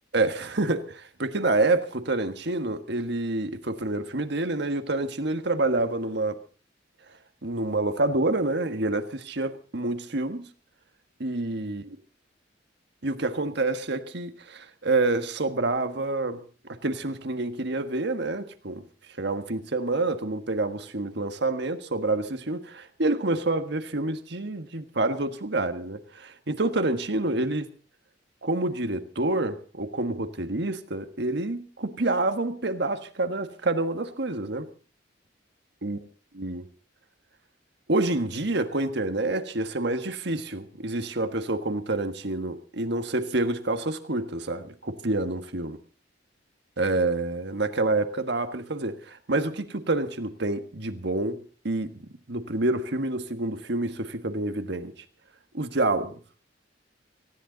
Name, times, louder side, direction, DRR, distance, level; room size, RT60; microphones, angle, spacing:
voice 1, 0.1-6.4 7.4-10.5 11.2-11.8 13.0-16.4 16.8-18.8 19.2-27.6 28.4-34.7 35.8-36.0 36.4-36.7 37.9-45.8 46.8-51.9 52.3-54.9 55.5-56.2, right 2 dB, 65° right, 9 dB, 1.6 m, -27 dB
19.0 x 16.0 x 4.0 m, 0.39 s
head